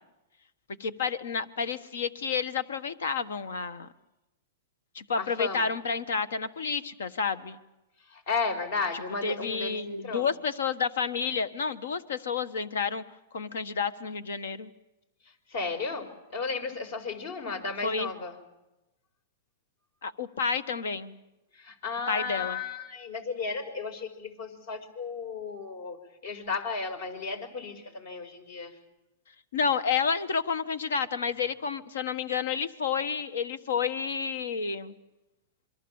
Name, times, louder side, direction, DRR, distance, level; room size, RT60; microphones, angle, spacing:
voice 1, 0.8-3.9 4.9-7.6 9.2-13.0 13.3-14.7 17.8-18.1 20.0-21.1 22.1-22.6 29.5-35.0, left 6 dB, 85° left, 14 dB, 1.5 m, -30 dB
voice 2, 5.2-5.7 8.1-10.3 15.5-18.4 21.5-28.7, left 4 dB, 60° left, 9 dB, 4.9 m, -34 dB
27.5 x 23.0 x 7.3 m, 0.98 s
hypercardioid pair, 130°, 0 cm